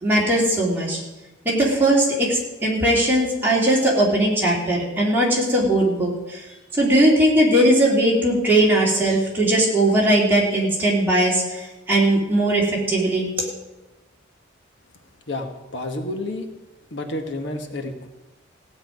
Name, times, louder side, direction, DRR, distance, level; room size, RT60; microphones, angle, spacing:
voice 1, 0.0-1.0 1.4-13.5, right 1 dB, 10° right, -5 dB, 3.3 m, -19 dB
voice 2, 15.3-16.5 16.9-18.1, left 1 dB, 65° left, 5 dB, 1.3 m, -30 dB
16.0 x 5.7 x 9.3 m, 1.1 s
head